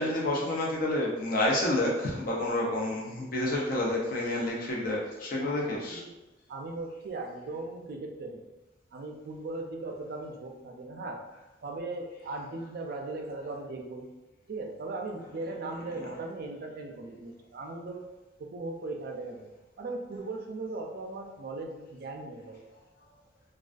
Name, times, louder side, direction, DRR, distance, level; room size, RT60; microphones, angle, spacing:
voice 1, 0.0-6.0, left 1 dB, 50° left, -3 dB, 0.5 m, -29 dB
voice 2, 5.4-6.1 6.5-8.4 8.9-11.2 11.6-14.1 14.5-18.0 18.4-19.5 19.8-22.6, right 2 dB, 55° right, 2 dB, 0.4 m, -38 dB
2.3 x 2.3 x 2.4 m, 1.0 s
head